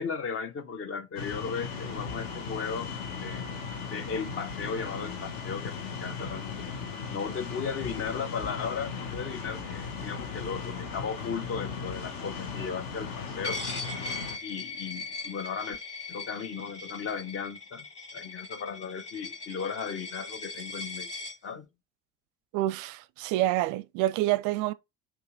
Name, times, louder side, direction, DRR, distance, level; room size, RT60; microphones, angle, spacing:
voice 1, 0.0-2.9 3.2-3.5 3.9-6.6 7.1-13.6 14.4-15.8 16.1-17.9 18.1-21.1 21.4-21.7, left 6 dB, 30° left, 0.7 m, -36 dB
sound 1, 1.2-14.4, left 5 dB, 55° left, 1.1 m, -37 dB
Coin (dropping), 13.4-21.3, left 3 dB, 15° left, 2.2 m, -39 dB
voice 2, 22.5-24.7, right 15 dB, 50° right, 0.4 m, -27 dB
5.3 x 2.4 x 3.7 m
figure-of-eight pair, 55°, 42 cm